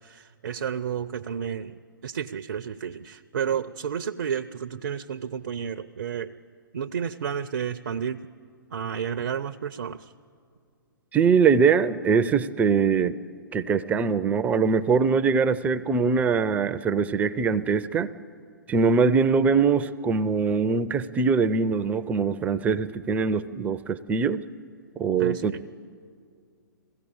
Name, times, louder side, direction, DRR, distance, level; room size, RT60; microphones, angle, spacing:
voice 1, 0.0-6.3 6.7-8.2 8.7-10.1 25.2-25.6, right 8 dB, 60° right, 8 dB, 0.6 m, -31 dB
voice 2, 11.1-13.2 13.5-18.1 18.7-24.4 25.0-25.5, right 5 dB, 15° right, 13 dB, 0.5 m, -22 dB
21.0 x 15.5 x 8.6 m, 2.2 s
figure-of-eight pair, 120°, 11 cm